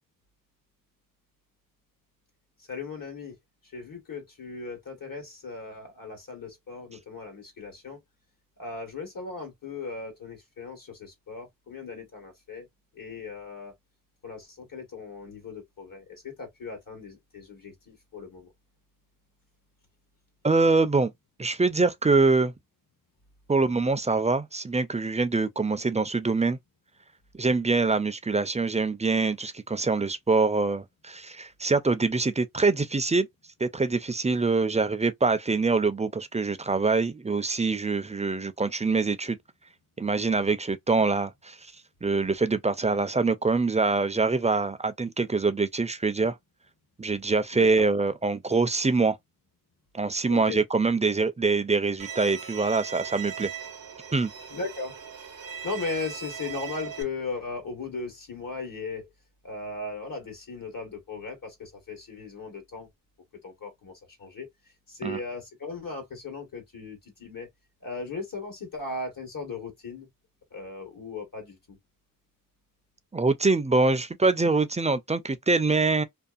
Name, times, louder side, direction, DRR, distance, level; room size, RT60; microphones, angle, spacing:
voice 1, 2.7-3.3 3.6-8.0 8.6-12.7 12.9-13.7 14.2-18.5 47.5-47.9 50.3-50.6 54.5-54.9 55.6-59.1 59.4-62.9 63.4-63.9 64.2-64.5 64.9-67.5 67.8-70.1 70.5-71.8, left 3 dB, 70° left, 1.2 m, -37 dB
voice 2, 20.4-21.1 21.4-22.5 23.5-26.6 27.3-33.3 33.6-39.4 40.0-41.6 42.0-46.4 47.0-49.2 49.9-53.5 54.1-54.3 65.0-65.2 73.1-76.0, right 3 dB, 20° right, 0.4 m, -24 dB
Bowed string instrument, 52.0-57.0, right 7 dB, 80° right, 0.7 m, -39 dB
2.7 x 2.3 x 2.3 m
cardioid pair, 45°, 34 cm